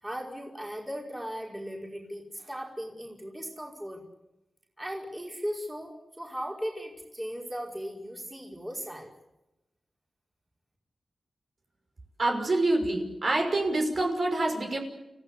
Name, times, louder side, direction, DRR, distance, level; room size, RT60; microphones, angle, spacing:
voice 1, 0.0-4.0 4.8-9.1, equal, 10° right, -1 dB, 5.1 m, -37 dB
voice 2, 12.2-14.8, right 2 dB, 45° right, 3 dB, 5.8 m, -26 dB
30.0 x 16.5 x 8.5 m, 0.96 s
wide cardioid pair, 110°, 0 cm